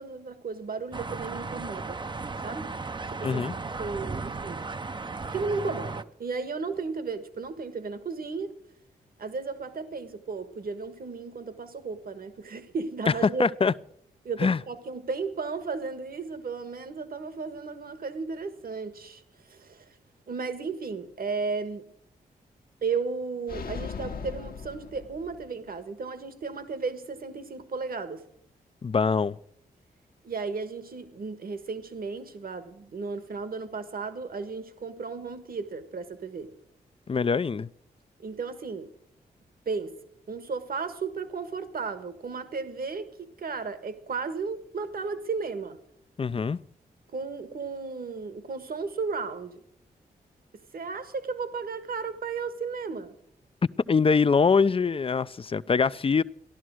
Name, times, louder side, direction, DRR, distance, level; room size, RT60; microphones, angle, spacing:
voice 1, 0.0-2.0 2.4-2.7 3.1-3.4 3.8-4.6 5.3-8.5 9.2-13.5 14.2-20.0 20.3-21.9 22.8-28.2 30.2-36.5 38.2-38.9 39.6-39.9 40.3-45.8 47.1-49.6 50.7-53.2, right 4 dB, 60° right, 1.5 m, -34 dB
sound 1, 0.9-6.0, right 3 dB, 25° right, 0.6 m, -35 dB
voice 2, 3.2-3.5 13.4-13.7 14.4-14.6 28.8-29.4 37.1-37.7 46.2-46.6 53.9-56.2, left 5 dB, 35° left, 0.5 m, -23 dB
sound 2, 23.5-25.7, left 5 dB, 60° left, 1.2 m, -38 dB
14.5 x 11.5 x 6.2 m
cardioid pair, 50°, 17 cm